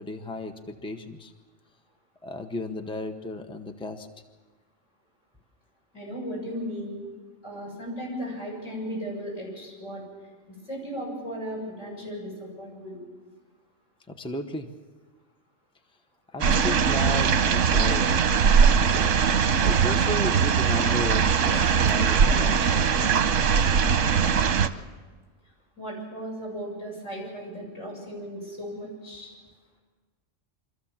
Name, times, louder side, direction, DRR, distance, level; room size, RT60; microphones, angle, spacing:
voice 1, 0.0-1.3 2.2-4.1 14.1-14.7 16.3-18.1 18.9-19.2 19.6-23.2, left 1 dB, 5° left, 5 dB, 0.9 m, -34 dB
voice 2, 5.9-7.0 7.4-10.0 10.5-13.0 25.8-29.3, equal, 80° left, -3 dB, 7.9 m, -36 dB
sound 1, 16.4-24.7, right 6 dB, 90° right, 1.2 m, -21 dB
24.5 x 14.5 x 7.3 m, 1.4 s
omnidirectional pair, 1.3 m